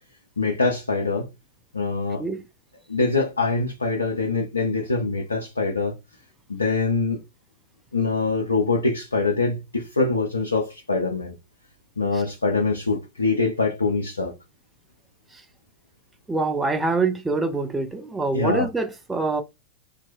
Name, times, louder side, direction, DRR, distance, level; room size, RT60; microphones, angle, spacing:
voice 1, 0.4-1.3 1.7-2.2 2.9-5.9 6.5-7.2 7.9-11.4 12.0-14.3 18.3-18.7, left 3 dB, 80° left, 0.4 m, -24 dB
voice 2, 16.3-19.4, right 3 dB, 10° right, 0.4 m, -25 dB
2.5 x 2.1 x 2.5 m
figure-of-eight pair, 90°, 0 cm